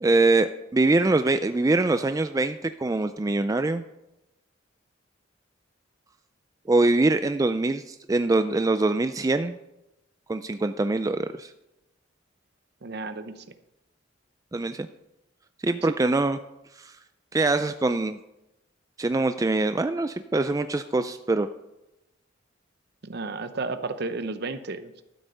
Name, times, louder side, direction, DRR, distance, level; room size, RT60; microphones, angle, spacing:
voice 1, 0.0-3.8 6.7-9.6 10.3-11.5 14.5-14.9 15.6-16.4 16.8-16.9 17.3-18.2 19.0-21.5, right 2 dB, 15° right, 9 dB, 0.3 m, -23 dB
voice 2, 12.8-13.4 23.0-25.0, right 3 dB, 55° right, 11 dB, 0.8 m, -33 dB
12.5 x 8.0 x 5.4 m, 0.91 s
head